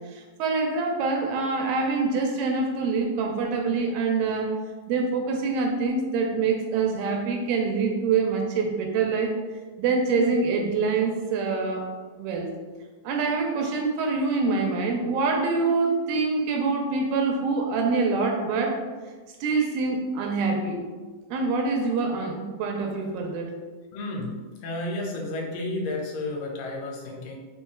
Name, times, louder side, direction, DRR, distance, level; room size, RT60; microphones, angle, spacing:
voice 1, 0.1-4.5 4.9-9.3 9.8-11.9 12.2-12.5 13.0-18.8 19.4-20.8 21.3-23.5, right 4 dB, 90° right, 1 dB, 2.5 m, -25 dB
voice 2, 23.9-24.3 24.6-27.4, left 2 dB, 80° left, 0 dB, 2.2 m, -31 dB
5.4 x 3.7 x 2.3 m, 1.4 s
omnidirectional pair, 4.1 m